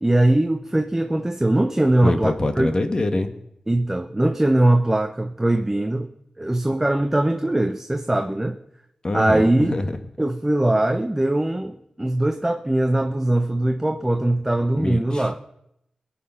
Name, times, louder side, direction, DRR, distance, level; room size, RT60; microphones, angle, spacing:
voice 1, 0.0-2.7 3.7-6.1 6.4-8.6 9.1-9.8 10.2-15.3, right 1 dB, 15° right, 6 dB, 0.8 m, -21 dB
voice 2, 2.0-3.3 9.0-9.9 14.7-15.4, left 2 dB, 40° left, 8 dB, 1.4 m, -24 dB
22.0 x 8.6 x 5.7 m, 0.79 s
wide cardioid pair, 95°, 2 cm